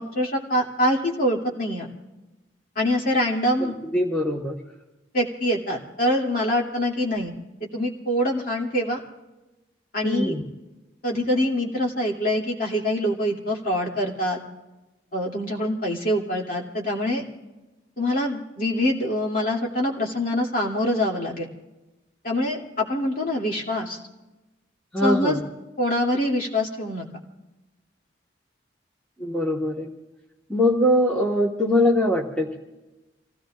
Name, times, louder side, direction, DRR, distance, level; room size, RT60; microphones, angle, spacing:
voice 1, 0.0-1.9 2.7-3.7 5.1-7.3 7.7-9.0 9.9-10.4 11.0-14.4 15.1-17.2 18.0-21.5 22.2-24.0 25.0-25.4 25.8-27.1, left 1 dB, 45° left, -1 dB, 2.8 m, -24 dB
voice 2, 3.6-4.5 10.0-10.4 24.9-25.4 29.2-29.9 30.5-32.6, left 1 dB, 5° left, -2 dB, 1.6 m, -22 dB
29.0 x 17.5 x 2.5 m, 1.1 s
head